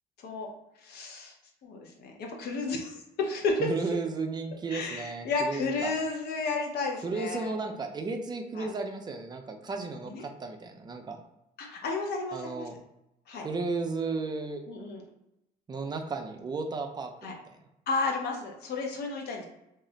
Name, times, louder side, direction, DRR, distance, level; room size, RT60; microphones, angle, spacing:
voice 1, 0.8-1.3 1.6-3.6 4.7-7.5 8.6-8.7 10.1-10.2 11.6-12.7 13.3-13.5 14.7-15.0 17.2-17.3 17.9-19.5, left 3 dB, 70° left, 1 dB, 0.7 m, -32 dB
voice 2, 3.6-6.0 7.0-11.2 12.3-12.8 13.4-14.6 15.7-17.6, right 4 dB, 25° right, 4 dB, 0.4 m, -34 dB
2.4 x 2.1 x 3.8 m, 0.87 s
cardioid pair, 110°, 17 cm